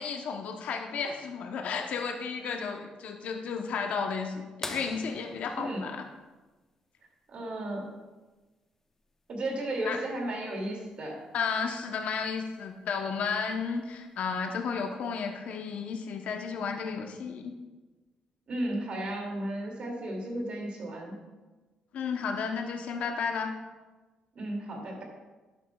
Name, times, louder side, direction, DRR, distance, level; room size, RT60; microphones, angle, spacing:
voice 1, 0.0-6.0 9.8-10.0 11.3-17.5 21.9-23.5, left 5 dB, 70° left, 3 dB, 0.9 m, -33 dB
sound 1, 4.6-7.1 9.0-9.1 11.3-11.4 13.1-13.4 14.2-14.3, left 2 dB, 20° left, 0.7 m, -42 dB
voice 2, 7.3-7.9 9.3-11.2 18.5-21.2 24.3-25.0, right 1 dB, 55° right, 0 dB, 2.4 m, -34 dB
11.5 x 9.1 x 2.3 m, 1.2 s
cardioid pair, 125°, 2 cm